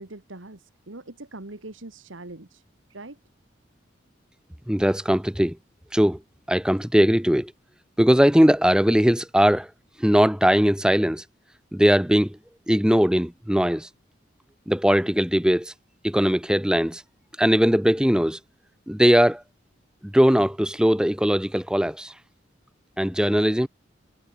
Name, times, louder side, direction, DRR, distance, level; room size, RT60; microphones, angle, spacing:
voice 1, 0.0-2.6 2.9-3.2, right 2 dB, 85° right, 2.0 m, -42 dB
voice 2, 4.7-5.6 5.9-6.2 6.5-7.5 8.0-9.7 10.0-11.2 11.7-12.4 12.7-13.9 14.7-15.7 16.0-17.0 17.4-18.4 18.9-19.4 20.0-22.1 23.0-23.7, equal, 5° right, 0.9 m, -20 dB
head